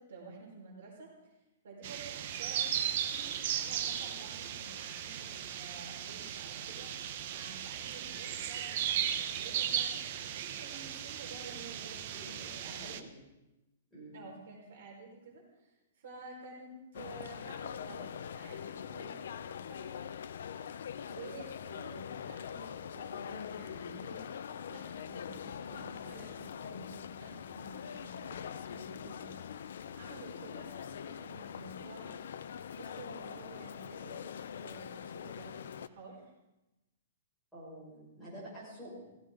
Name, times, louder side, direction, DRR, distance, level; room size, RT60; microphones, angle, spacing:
voice 1, 0.0-1.4 1.6-7.0 7.2-13.1 14.1-19.9 21.1-24.2 24.7-29.5 29.9-32.2 32.7-36.2 38.8-39.2, right 3 dB, 55° right, -2 dB, 4.8 m, -51 dB
sound 1, 1.8-13.0, right 10 dB, 35° right, 0.8 m, -36 dB
voice 2, 12.1-13.1 13.9-14.2 37.5-38.9, equal, ahead, -11 dB, 6.0 m, -49 dB
sound 2, 16.9-35.9, left 8 dB, 60° left, 0.5 m, -43 dB
16.5 x 15.5 x 3.8 m, 0.97 s
hypercardioid pair, 175°, 0 cm